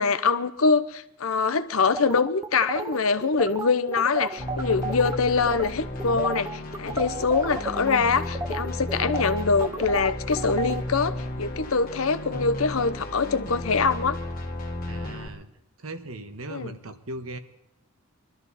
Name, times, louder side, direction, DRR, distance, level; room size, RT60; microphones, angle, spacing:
voice 1, 0.0-14.2 16.5-16.7, left 4 dB, 90° left, 11 dB, 0.9 m, -24 dB
sound 1, 1.9-5.2 5.5-5.7 6.0-10.8, right 3 dB, 15° right, 0.6 m, -33 dB
sound 2, 4.4-15.3, left 1 dB, 45° left, 1.6 m, -34 dB
voice 2, 14.9-15.5 15.8-17.4, right 2 dB, 90° right, 8 dB, 1.4 m, -38 dB
22.5 x 13.0 x 4.2 m, 0.85 s
head